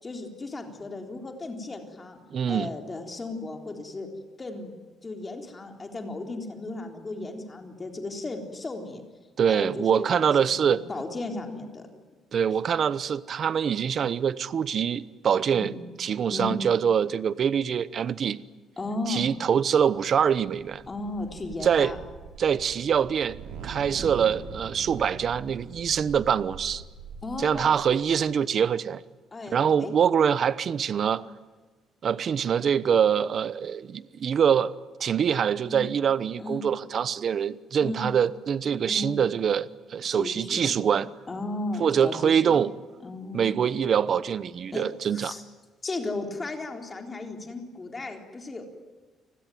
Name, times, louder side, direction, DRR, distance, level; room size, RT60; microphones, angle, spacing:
voice 1, 0.0-2.2 2.5-4.1 4.4-4.7 5.0-9.0 9.5-11.8 15.5-15.8 16.3-16.6 18.8-19.3 20.9-22.0 24.0-24.3 27.2-27.8 29.3-29.9 35.6-35.9 36.4-36.7 37.8-38.0 38.9-39.2 40.1-40.8 41.3-42.6 43.0-43.5 44.7-45.4 45.8-48.6, left 2 dB, 20° left, 4 dB, 3.8 m, -35 dB
voice 2, 2.3-2.7 9.4-10.8 12.3-15.7 16.0-18.4 19.1-20.8 21.6-21.9 22.4-23.4 23.6-26.8 27.4-29.0 29.5-31.2 32.0-34.7 35.0-41.1 41.8-42.7 43.3-45.3, right 7 dB, 40° right, 16 dB, 0.9 m, -24 dB
sound 1, 19.9-28.2, right 5 dB, 90° right, 5.0 m, -43 dB
30.0 x 20.5 x 9.4 m, 1.3 s
cardioid pair, 150°, 0 cm